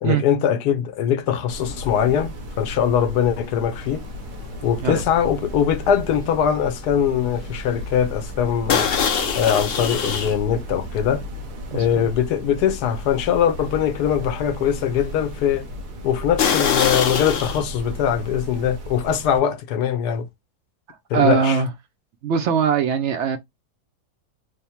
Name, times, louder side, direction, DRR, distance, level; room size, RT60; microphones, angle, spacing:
voice 1, 0.0-4.0 4.6-8.9 9.4-11.2 11.7-15.7 16.0-20.3 21.1-21.6, left 8 dB, 85° left, 1.2 m, -22 dB
sound 1, 1.5-6.7 6.9-7.2 7.6-7.7 8.7-10.4 11.0-11.1 11.7-11.8 12.3-12.4 16.4-17.6, left 7 dB, 60° left, 0.6 m, -24 dB
sound 2, 1.5-19.4, equal, 90° right, 1.4 m, -35 dB
voice 2, 11.7-12.1 21.1-21.7 22.2-23.4, right 7 dB, 70° right, 0.7 m, -21 dB
3.5 x 2.0 x 4.3 m
omnidirectional pair, 1.7 m